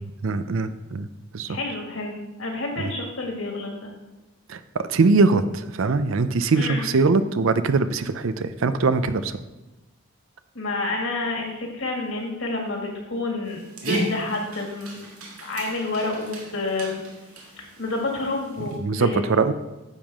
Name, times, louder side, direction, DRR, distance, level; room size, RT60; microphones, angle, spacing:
voice 1, 0.2-1.1 1.3-1.6 2.8-2.9 4.5-9.4 18.8-19.5, right 4 dB, 65° right, 12 dB, 0.5 m, -22 dB
voice 2, 1.5-3.9 6.5-6.9 10.5-15.1 15.4-17.0 17.6-19.2, left 2 dB, 60° left, 0 dB, 2.1 m, -29 dB
Dog, 13.4-18.8, right 1 dB, 90° right, 1.9 m, -35 dB
10.0 x 7.3 x 3.6 m, 1.1 s
head